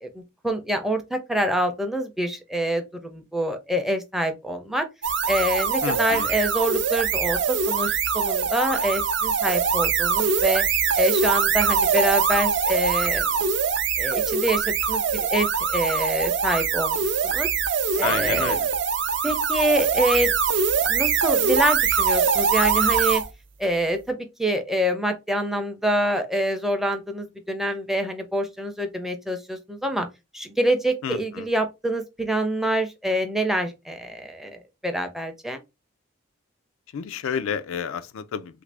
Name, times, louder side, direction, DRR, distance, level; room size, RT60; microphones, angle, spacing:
voice 1, 0.0-4.9 5.3-10.6 11.0-13.3 14.0-17.5 18.0-18.6 19.2-20.3 20.9-23.2 23.6-30.1 30.3-35.6, right 1 dB, ahead, 0.4 m, -26 dB
sound 1, 5.0-23.3, right 6 dB, 60° right, 0.5 m, -23 dB
voice 2, 5.8-6.3 18.0-18.7 31.0-31.4 36.9-38.6, left 7 dB, 80° left, 0.4 m, -30 dB
3.2 x 2.5 x 3.3 m
head